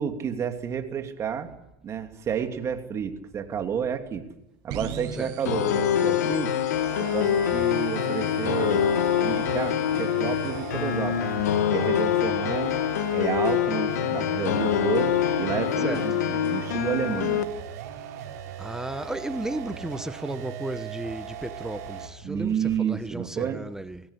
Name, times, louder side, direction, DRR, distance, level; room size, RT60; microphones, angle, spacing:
voice 1, 0.0-1.5 1.8-4.2 4.6-6.5 7.0-8.8 9.2-11.3 11.7-12.8 13.1-17.4 22.2-23.6, right 8 dB, 35° right, 2.9 m, -30 dB
sound 1, 4.7-12.3, right 6 dB, 60° right, 7.5 m, -43 dB
sound 2, 5.5-17.4, left 9 dB, 85° left, 2.0 m, -25 dB
sound 3, 6.7-22.2, right 9 dB, 75° right, 5.9 m, -39 dB
voice 2, 18.6-22.5 22.8-24.0, right 1 dB, 5° right, 1.1 m, -34 dB
23.0 x 17.5 x 8.4 m
hypercardioid pair, 105°, 9 cm